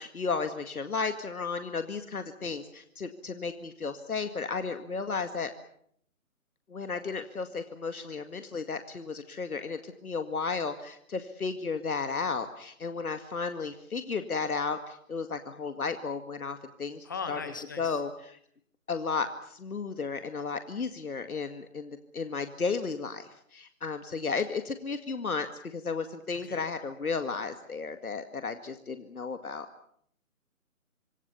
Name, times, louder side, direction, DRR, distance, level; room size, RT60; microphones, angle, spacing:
voice 1, 0.0-5.5 6.7-17.4 17.8-18.4 18.9-29.7, left 4 dB, 75° left, 8 dB, 2.1 m, -34 dB
voice 2, 17.0-18.0 26.4-26.6, left 5 dB, 15° left, 9 dB, 1.5 m, -38 dB
27.0 x 23.5 x 7.0 m, 0.67 s
hypercardioid pair, 175°, 43 cm